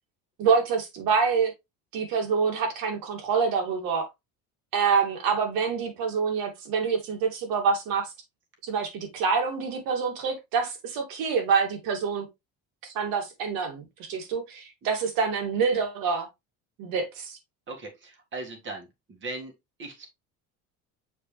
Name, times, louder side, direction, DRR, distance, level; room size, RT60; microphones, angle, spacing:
voice 1, 0.4-1.5 1.9-4.1 4.7-8.1 8.6-12.3 12.8-16.3 16.8-17.4, right 5 dB, 75° right, 2.7 m, -26 dB
voice 2, 17.7-19.5 19.8-20.1, right 2 dB, 35° right, 1.9 m, -38 dB
6.9 x 4.6 x 3.2 m
cardioid pair, 165°, 35 cm